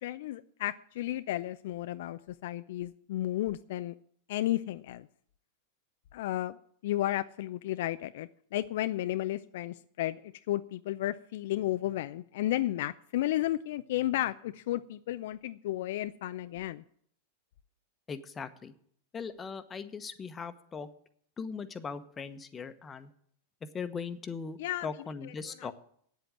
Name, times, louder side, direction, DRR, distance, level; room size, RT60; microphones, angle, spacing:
voice 1, 0.0-3.9 4.3-5.1 6.1-6.6 6.8-16.8 24.6-24.9 25.2-25.3 25.6-25.7, left 14 dB, 60° left, 12 dB, 0.4 m, -33 dB
voice 2, 18.1-18.7 19.1-20.9 21.4-23.1 23.7-25.7, left 5 dB, 20° left, 10 dB, 1.0 m, -39 dB
9.1 x 8.0 x 8.7 m, 0.63 s
hypercardioid pair, 95°, 0 cm